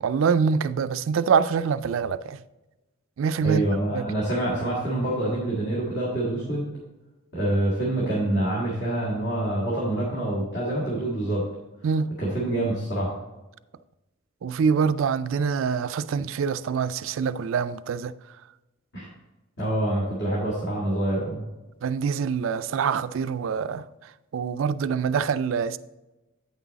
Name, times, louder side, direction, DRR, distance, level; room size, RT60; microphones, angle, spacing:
voice 1, 0.0-2.4 3.2-3.6 3.9-4.1 11.8-12.1 14.4-18.1 21.8-23.9 24.3-25.8, right 6 dB, 70° right, 0.3 m, -25 dB
voice 2, 3.4-6.7 7.3-11.4 12.2-13.1 18.9-19.1 19.6-21.4, right 1 dB, 55° left, 2.0 m, -26 dB
8.6 x 6.1 x 4.0 m
head